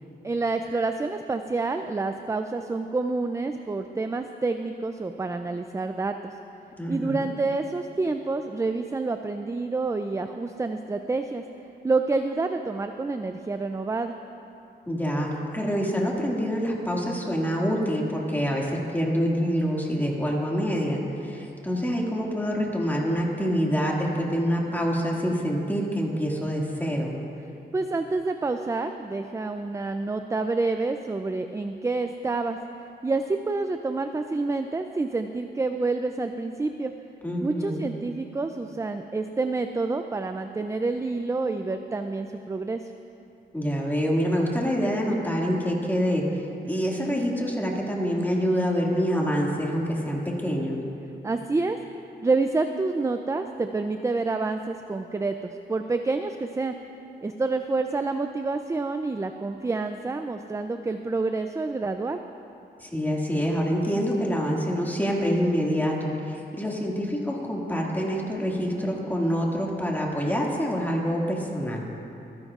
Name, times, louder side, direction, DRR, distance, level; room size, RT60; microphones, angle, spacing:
voice 1, 0.2-6.3 6.9-11.4 11.8-14.2 27.7-32.6 33.0-36.9 37.4-42.9 51.2-51.8 52.2-56.7 57.2-62.2, right 3 dB, 15° right, 7 dB, 0.4 m, -28 dB
voice 2, 6.8-7.3 14.9-27.1 37.2-37.9 43.5-50.8 62.8-71.9, equal, 10° left, -2 dB, 2.0 m, -26 dB
26.0 x 10.5 x 2.4 m, 2.7 s
wide cardioid pair, 100°, 19 cm